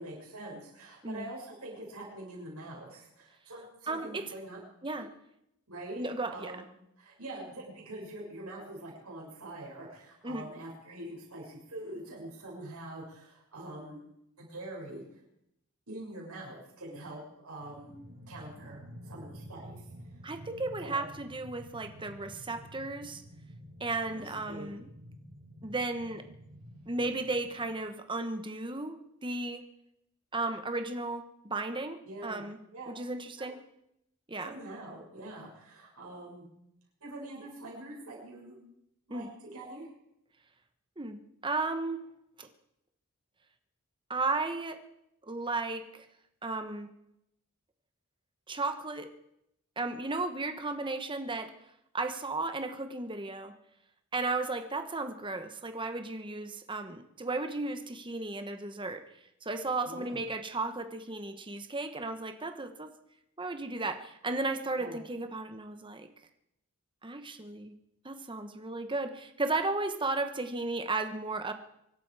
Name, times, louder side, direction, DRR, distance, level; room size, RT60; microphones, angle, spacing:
voice 1, 0.0-4.6 5.7-6.6 7.0-14.0 14.4-15.0 15.9-17.9 18.3-19.9 20.8-21.1 24.0-24.7 32.0-32.4 32.7-32.9 33.4-33.5 34.4-36.5 37.0-38.6 39.1-39.9 59.8-60.2 64.7-65.0, right 1 dB, 85° right, -2 dB, 6.3 m, -44 dB
voice 2, 3.9-4.3 4.8-5.1 6.0-6.5 10.2-10.5 20.2-23.2 23.8-24.9 25.6-26.3 26.9-29.6 30.3-32.6 32.9-33.6 34.3-34.5 39.1-39.3 41.0-42.0 42.4-42.5 44.1-44.8 45.2-46.1 46.4-46.9 48.5-49.1 49.8-51.5 51.9-53.5 54.1-59.0 59.4-62.9 63.4-66.1 67.0-67.7 68.0-71.5, right 3 dB, 20° right, 8 dB, 1.2 m, -34 dB
sound 1, 17.6-27.7, equal, 65° right, 6.9 m, -50 dB
24.5 x 12.0 x 4.9 m, 0.80 s
head